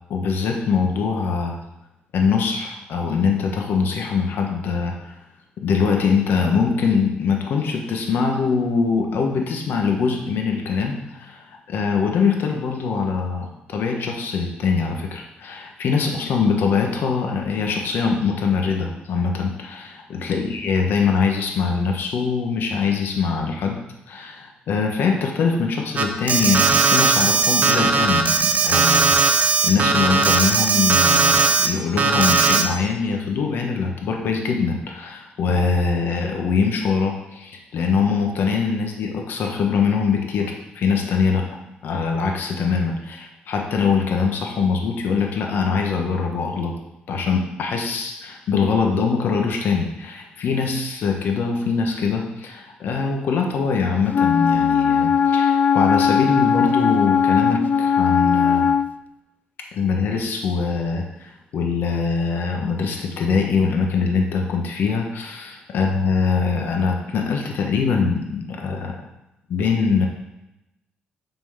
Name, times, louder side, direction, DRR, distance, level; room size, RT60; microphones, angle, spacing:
voice 1, 0.1-1.6 2.1-5.1 5.6-19.9 20.3-29.1 29.6-41.5 41.8-46.7 47.1-58.7 59.7-68.9 69.5-70.1, left 5 dB, 75° left, 2 dB, 1.4 m, -23 dB
Alarm, 26.0-31.7 32.0-32.6, right 4 dB, 45° right, 0.9 m, -18 dB
Wind instrument woodwind instrument, 54.1-58.9, left 7 dB, 50° left, 0.4 m, -18 dB
8.0 x 4.4 x 5.7 m, 0.91 s
cardioid pair, 85°, 4 cm